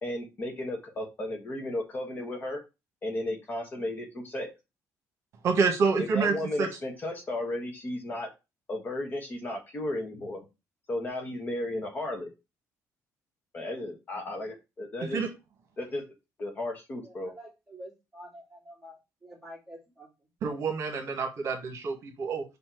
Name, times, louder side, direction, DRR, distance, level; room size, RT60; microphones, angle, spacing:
voice 1, 0.0-2.6 3.0-4.5 6.0-8.3 8.7-10.4 10.9-12.3 13.5-15.2 15.8-16.0 16.4-17.3, left 1 dB, 30° left, 1.3 m, -34 dB
voice 2, 5.4-6.7 15.1-15.3 20.4-22.4, right 5 dB, 50° right, 1.3 m, -27 dB
voice 3, 17.0-20.1, equal, 5° right, 2.6 m, -48 dB
5.4 x 4.3 x 4.5 m
cardioid pair, 165°, 6 cm